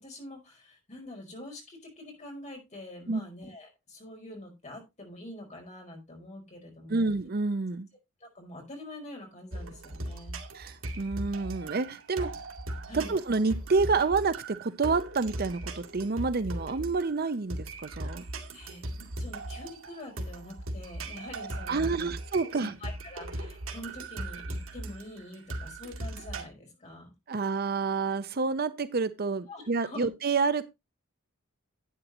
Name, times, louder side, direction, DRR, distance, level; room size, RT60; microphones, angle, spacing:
voice 1, 0.0-7.1 8.2-10.4 12.9-13.1 18.5-22.1 22.6-27.1 29.5-30.1, left 1 dB, 35° left, 5.0 m, -45 dB
voice 2, 6.9-7.9 10.5-12.3 12.9-18.2 21.7-22.7 27.3-30.7, right 4 dB, 45° right, 0.6 m, -28 dB
sound 1, 9.5-26.4, right 1 dB, 75° right, 2.4 m, -38 dB
12.0 x 9.0 x 3.0 m
head